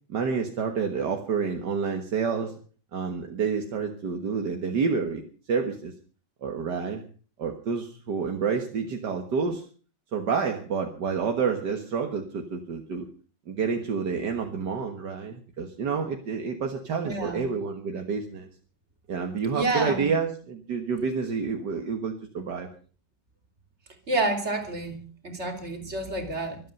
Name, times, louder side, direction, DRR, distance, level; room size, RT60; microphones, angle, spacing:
voice 1, 0.1-2.5 2.9-5.9 6.4-7.0 7.4-9.6 10.1-13.1 13.5-18.5 19.1-22.7, right 5 dB, 75° right, 4 dB, 2.1 m, -29 dB
voice 2, 17.0-17.4 19.5-20.1 24.1-26.6, right 2 dB, 40° right, 6 dB, 3.3 m, -29 dB
25.0 x 8.8 x 5.4 m, 0.40 s
omnidirectional pair, 1.9 m